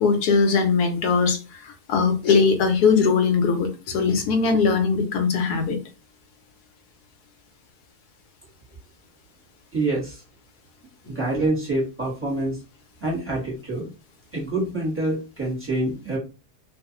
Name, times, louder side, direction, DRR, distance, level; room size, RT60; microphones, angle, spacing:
voice 1, 0.0-5.8, left 5 dB, 80° left, 1.1 m, -20 dB
voice 2, 9.7-10.2 11.0-12.6 13.0-13.9 14.3-16.2, right 2 dB, 10° right, 1.0 m, -26 dB
2.4 x 2.3 x 2.8 m
omnidirectional pair, 1.7 m